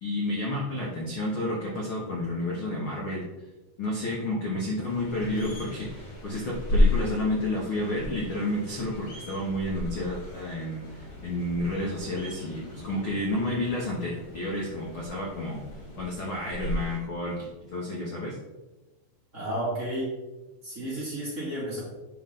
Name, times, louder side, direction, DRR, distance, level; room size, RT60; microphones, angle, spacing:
voice 1, 0.0-3.2 3.8-15.6 16.0-18.4, left 1 dB, 80° left, -3 dB, 1.1 m, -31 dB
sound 1, 4.8-17.0, left 1 dB, 55° left, 1.1 m, -33 dB
voice 2, 19.3-20.1 20.6-21.8, right 1 dB, 20° right, -8 dB, 2.8 m, -32 dB
9.5 x 5.8 x 3.9 m, 1.1 s
omnidirectional pair, 4.7 m